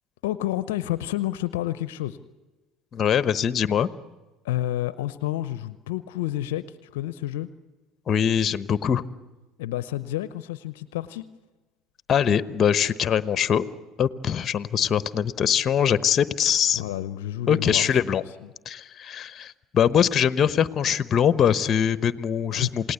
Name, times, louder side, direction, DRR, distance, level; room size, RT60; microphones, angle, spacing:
voice 1, 0.2-2.2 4.4-7.5 9.6-11.2 16.8-17.9 22.5-22.7, left 14 dB, 75° left, 15 dB, 0.7 m, -29 dB
voice 2, 2.9-3.9 8.1-9.0 12.1-13.6 14.0-16.8 17.5-18.2 18.6-22.9, left 8 dB, 40° left, 15 dB, 1.0 m, -22 dB
28.0 x 18.5 x 8.2 m, 1.2 s
hypercardioid pair, 70°, 0 cm